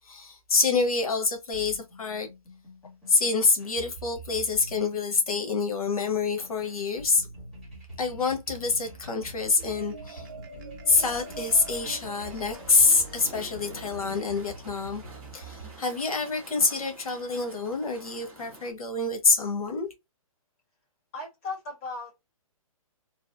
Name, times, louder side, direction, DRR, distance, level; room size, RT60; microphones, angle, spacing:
voice 1, 0.0-2.3 3.1-7.3 8.0-10.3 10.9-15.0 15.3-19.9, left 4 dB, 85° left, 1.2 m, -26 dB
sound 1, 1.5-16.5, right 1 dB, 5° left, 1.5 m, -46 dB
Marimba xylophone, 9.5-16.1, right 4 dB, 35° right, 0.7 m, -47 dB
sound 2, 11.2-18.7, right 2 dB, 10° right, 0.9 m, -48 dB
voice 2, 21.1-22.2, left 3 dB, 25° left, 1.6 m, -36 dB
3.3 x 2.4 x 2.4 m
hypercardioid pair, 175°, 18 cm